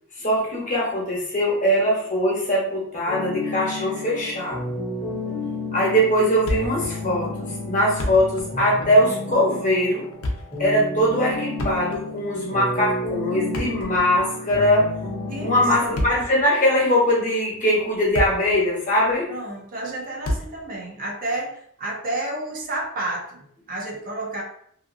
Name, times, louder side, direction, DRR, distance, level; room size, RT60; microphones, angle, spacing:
voice 1, 0.2-4.7 5.7-10.0 10.6-14.9 15.4-19.3, equal, 40° left, -4 dB, 0.9 m, -21 dB
sound 1, 3.1-15.8, left 2 dB, 5° left, 0.8 m, -32 dB
Thump thud, 6.4-7.0 7.2-7.3 7.8-8.5 8.8-9.0 10.0-10.6 11.5-12.2 13.4-14.3 15.7-16.4 17.1-17.3 17.8-18.6 18.9-19.0 20.2-20.7, left 1 dB, 80° left, 0.5 m, -29 dB
voice 2, 15.3-16.1 19.3-24.4, right 2 dB, 40° right, 0 dB, 0.5 m, -31 dB
2.7 x 2.3 x 2.5 m, 0.66 s
head